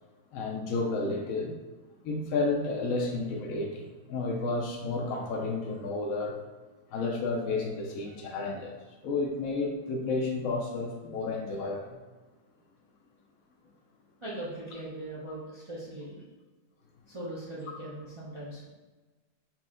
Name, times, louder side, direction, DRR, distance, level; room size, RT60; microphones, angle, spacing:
voice 1, 0.3-1.6 2.0-6.4 6.9-8.7 9.0-12.0, left 3 dB, 65° left, 0 dB, 1.0 m, -31 dB
voice 2, 14.2-16.2 17.1-18.7, right 1 dB, 30° right, -7 dB, 0.6 m, -40 dB
4.2 x 3.1 x 3.7 m, 1.2 s
omnidirectional pair, 1.7 m